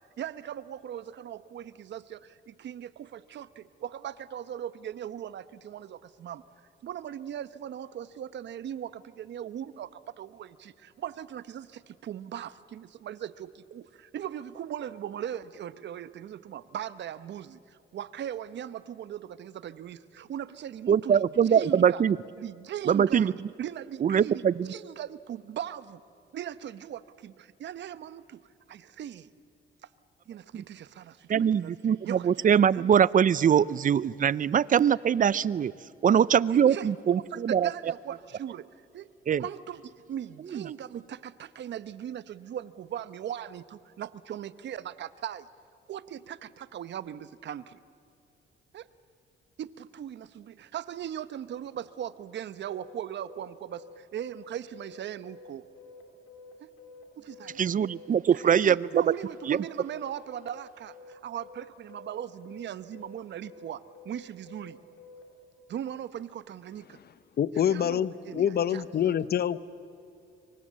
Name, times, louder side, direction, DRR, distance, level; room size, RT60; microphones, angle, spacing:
voice 1, 0.2-6.4 6.8-22.0 22.4-23.3 23.6-26.0 26.3-29.3 29.8-29.9 30.3-32.4 32.7-32.9 34.9-35.0 36.5-38.7 38.9-39.1 39.4-45.5 45.9-47.8 48.7-48.9 49.6-55.7 57.2-57.6 58.3-64.8 65.7-67.0 67.6-68.8, right 10 dB, 65° right, 15 dB, 0.9 m, -39 dB
voice 2, 20.9-22.2 22.9-23.3 24.0-24.7 30.5-30.6 31.3-35.7 36.0-37.7 39.3-39.4 40.5-40.6 57.6-58.9 59.5-59.6, right 8 dB, 40° right, 21 dB, 0.6 m, -23 dB
sound 1, 52.7-65.3, left 4 dB, 80° left, 3.6 m, -50 dB
voice 3, 67.4-69.6, left 9 dB, 55° left, 16 dB, 0.9 m, -26 dB
26.5 x 24.0 x 7.5 m, 2.7 s
cardioid pair, 90°, 20 cm